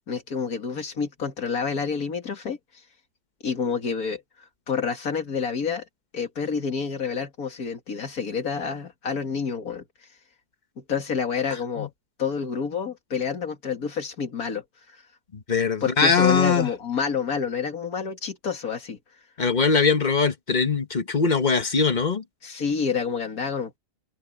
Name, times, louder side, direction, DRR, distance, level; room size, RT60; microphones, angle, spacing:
voice 1, 0.1-2.6 3.4-4.2 4.7-5.9 6.1-9.8 10.8-11.9 12.2-15.0 15.8-19.0 22.4-23.8, left 6 dB, 65° left, 2.6 m, -28 dB
voice 2, 15.3-16.7 19.4-22.2, left 5 dB, 30° left, 1.2 m, -21 dB
omnidirectional pair, 1.7 m